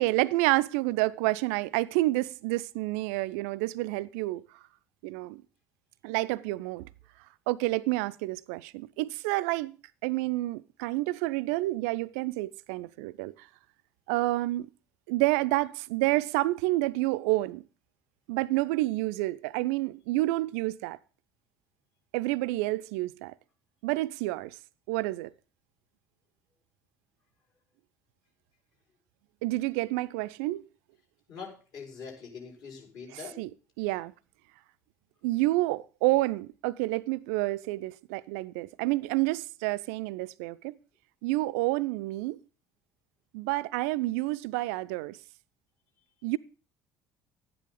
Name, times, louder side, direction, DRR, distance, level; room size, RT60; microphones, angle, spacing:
voice 1, 0.0-4.4 5.0-5.4 6.0-6.9 7.5-9.8 10.0-13.5 14.1-14.7 15.1-17.6 18.3-21.0 22.1-23.3 23.8-24.6 24.9-25.3 29.4-30.6 33.4-33.5 33.8-34.1 35.2-40.8 41.2-42.4 43.3-45.2 46.2-46.4, right 19 dB, 65° right, 0.4 m, -29 dB
voice 2, 31.3-33.4, left 5 dB, 50° left, 5.0 m, -43 dB
12.0 x 9.9 x 3.8 m
figure-of-eight pair, 55°, 8 cm